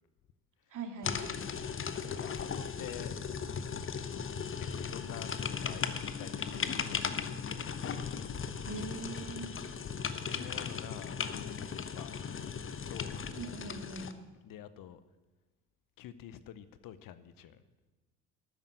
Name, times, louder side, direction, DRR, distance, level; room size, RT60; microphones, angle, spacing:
voice 1, 0.7-1.3 8.6-9.5 13.3-14.1, right 3 dB, 50° right, 5 dB, 2.2 m, -42 dB
sound 1, 1.0-14.1, left 6 dB, 30° left, 1.0 m, -37 dB
voice 2, 2.1-3.1 4.6-7.9 10.3-12.1 12.9-13.2 14.4-15.0 16.0-17.6, left 10 dB, 55° left, 14 dB, 0.9 m, -48 dB
12.5 x 9.5 x 7.8 m, 1.2 s
hypercardioid pair, 60°, 41 cm